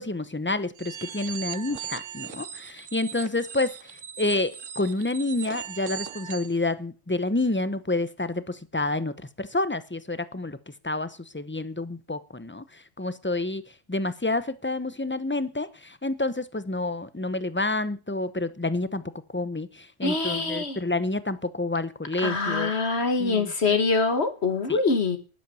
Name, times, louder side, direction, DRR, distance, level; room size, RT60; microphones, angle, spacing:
voice 1, 0.0-10.6 10.8-13.6 13.9-19.0 19.3-22.7 23.2-23.5 24.7-24.8, left 2 dB, 10° left, 14 dB, 0.7 m, -29 dB
sound 1, 0.8-6.6, right 9 dB, 85° right, 1.3 m, -39 dB
voice 2, 20.0-20.8 22.2-25.2, left 4 dB, 55° left, 9 dB, 2.1 m, -24 dB
11.5 x 11.0 x 7.0 m, 0.35 s
omnidirectional pair, 1.3 m